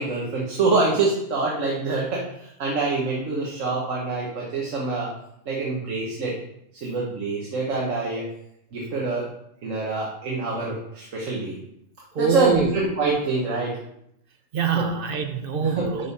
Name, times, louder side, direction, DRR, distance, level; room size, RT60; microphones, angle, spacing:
voice 1, 0.0-5.1 5.5-6.3 6.8-8.2 8.7-9.3 9.6-11.6 12.2-13.8 14.8-14.9 15.6-15.9, right 3 dB, 85° right, -3 dB, 1.5 m, -25 dB
voice 2, 12.1-12.7 14.5-16.1, right 6 dB, 55° right, 7 dB, 0.8 m, -24 dB
11.0 x 3.6 x 4.1 m, 0.77 s
omnidirectional pair, 1.3 m